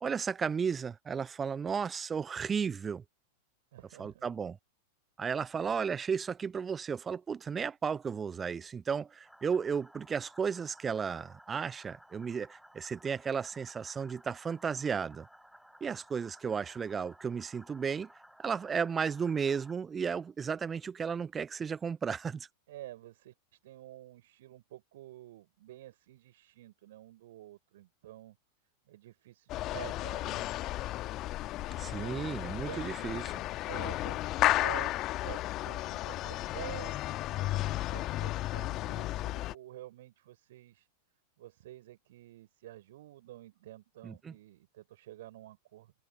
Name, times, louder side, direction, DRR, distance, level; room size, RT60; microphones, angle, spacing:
voice 1, 0.0-3.0 4.0-4.6 5.2-15.3 15.8-18.1 18.4-22.5 31.8-33.4 44.0-44.3, right 6 dB, 20° right, 0.4 m, -34 dB
voice 2, 3.7-4.2 22.7-28.4 28.9-30.5 31.9-32.9 33.7-40.9 41.4-45.9, right 15 dB, 55° right, 4.7 m, -49 dB
sound 1, 9.2-19.7, equal, ahead, 7.1 m, -58 dB
sound 2, 29.5-39.5, left 16 dB, 35° left, 1.2 m, -33 dB
figure-of-eight pair, 90°, 0 cm